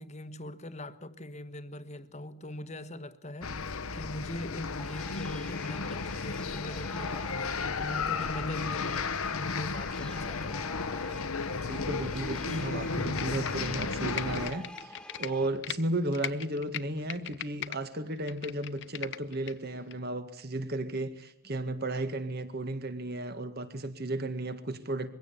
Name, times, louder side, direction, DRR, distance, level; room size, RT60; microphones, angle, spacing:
voice 1, 0.0-10.6, left 1 dB, 30° left, 1.2 m, -42 dB
sound 1, 3.4-14.5, left 4 dB, 80° left, 1.1 m, -34 dB
sound 2, 4.8-15.5, left 1 dB, 5° left, 1.2 m, -48 dB
voice 2, 11.7-25.1, right 1 dB, 45° right, 2.0 m, -34 dB
Computer keyboard, 13.0-15.8 16.1-17.8 18.1-19.5 19.9-20.0, left 11 dB, 55° left, 0.8 m, -39 dB
22.5 x 16.5 x 8.5 m
head